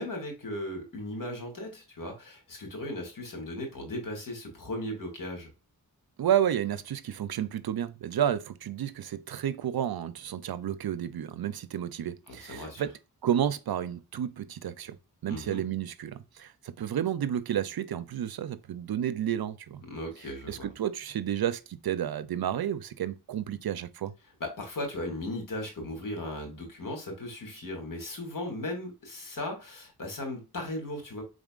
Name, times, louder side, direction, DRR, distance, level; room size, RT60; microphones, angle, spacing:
voice 1, 0.0-5.5 12.3-12.9 15.3-15.6 19.9-20.7 24.4-31.2, left 1 dB, 55° left, 2.1 m, -37 dB
voice 2, 6.2-12.9 13.2-15.0 15.2-19.8 20.5-24.1, right 10 dB, 70° right, 0.6 m, -31 dB
4.8 x 3.8 x 2.4 m
wide cardioid pair, 75°, 38 cm